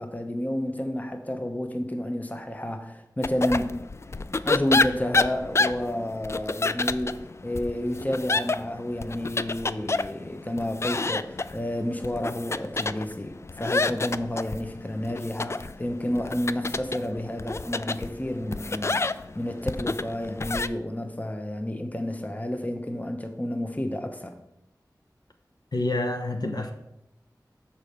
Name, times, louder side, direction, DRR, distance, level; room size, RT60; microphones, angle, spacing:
voice 1, 0.0-3.8 4.4-24.4, left 1 dB, 20° left, 0.9 m, -30 dB
sound 1, 3.2-20.7, left 3 dB, 40° left, 0.3 m, -29 dB
voice 2, 25.7-26.7, left 2 dB, 65° left, 0.9 m, -27 dB
6.9 x 4.4 x 6.6 m
wide cardioid pair, 50°, 7 cm